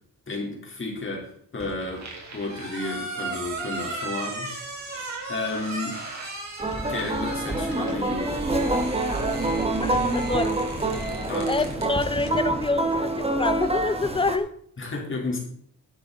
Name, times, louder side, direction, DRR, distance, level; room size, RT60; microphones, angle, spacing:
voice 1, 0.3-2.1 2.3-6.0 6.9-8.3 11.3-11.6 14.8-15.4, left 2 dB, 35° left, -1 dB, 3.8 m, -32 dB
sound 1, 1.6-11.9, right 3 dB, 50° right, 4.4 m, -36 dB
sound 2, 6.5-12.7, left 3 dB, 80° left, 2.8 m, -42 dB
sound 3, 6.6-14.4, right 2 dB, 15° right, 1.6 m, -26 dB
voice 2, 9.8-10.6 11.5-14.5, left 3 dB, 15° left, 12 dB, 0.8 m, -27 dB
12.0 x 12.0 x 4.0 m, 0.62 s
wide cardioid pair, 165°, 35 cm